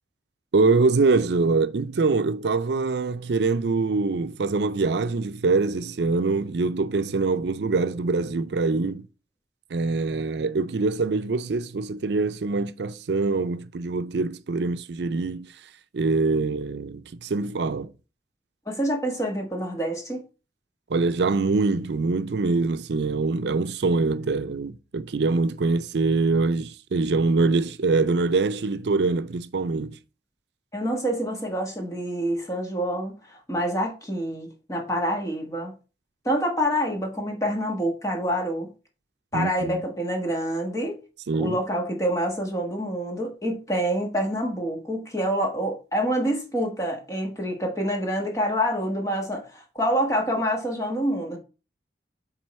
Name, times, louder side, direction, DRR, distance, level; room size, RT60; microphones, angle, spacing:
voice 1, 0.5-9.1 9.7-15.5 15.9-17.9 20.9-30.0 39.3-39.8 41.3-41.6, right 3 dB, 75° right, 0.5 m, -24 dB
voice 2, 18.7-20.2 30.7-35.7 36.2-38.7 39.3-41.0 41.3-51.4, equal, 20° left, 1.5 m, -27 dB
8.0 x 3.8 x 4.2 m
head